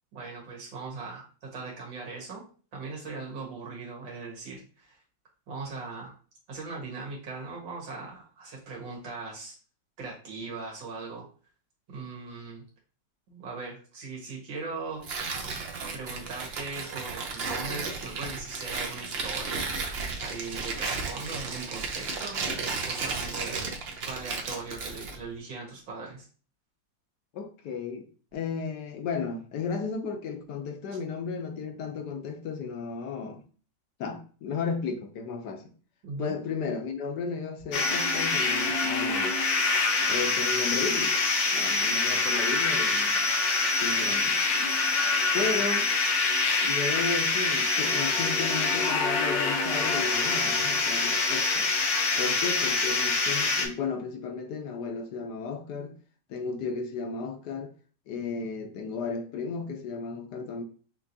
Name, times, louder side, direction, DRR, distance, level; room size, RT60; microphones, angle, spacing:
voice 1, 0.1-2.4 2.7-5.0 5.5-6.1 6.5-9.6 10.0-11.3 11.9-12.6 13.3-15.2 15.9-22.4 22.8-23.7 24.0-26.3 36.0-36.3, right 4 dB, 90° right, 2.2 m, -39 dB
Tearing, 15.0-25.2, right 4 dB, 60° right, 0.6 m, -34 dB
voice 2, 27.3-33.4 34.0-35.7 36.2-39.3 40.0-41.2 41.5-43.3 43.8-44.4 45.3-45.9 46.6-51.7 52.2-56.0 56.3-57.7 58.1-60.6, left 5 dB, 70° left, 1.2 m, -34 dB
sound 1, 37.7-53.7, left 3 dB, 90° left, 1.6 m, -25 dB
5.9 x 3.0 x 2.6 m
omnidirectional pair, 2.0 m